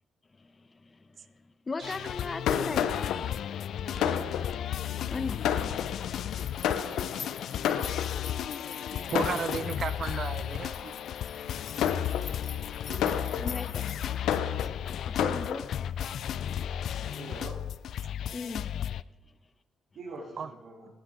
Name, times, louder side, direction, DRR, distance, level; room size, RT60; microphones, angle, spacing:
voice 1, 0.4-2.9 4.8-5.6 13.4-13.8 14.8-16.4 18.3-18.7, left 3 dB, 30° left, 12 dB, 1.0 m, -39 dB
sound 1, 1.8-19.0, left 10 dB, 70° left, 0.4 m, -34 dB
Fireworks, 2.0-8.5 9.1-10.0 10.6-10.9 11.4-15.6, left 9 dB, 85° left, 0.9 m, -32 dB
voice 2, 3.8-4.1 8.9-9.4 10.8-10.9 12.9-13.3 17.1-17.6 19.9-20.9, right 3 dB, 70° right, -5 dB, 3.6 m, -43 dB
sound 2, 4.0-14.1, left 5 dB, 50° left, 1.9 m, -48 dB
voice 3, 9.1-10.9 14.6-14.7 20.4-20.5, right 6 dB, 50° right, 13 dB, 0.7 m, -34 dB
19.5 x 9.7 x 3.8 m, 1.0 s
cardioid pair, 90°, 0 cm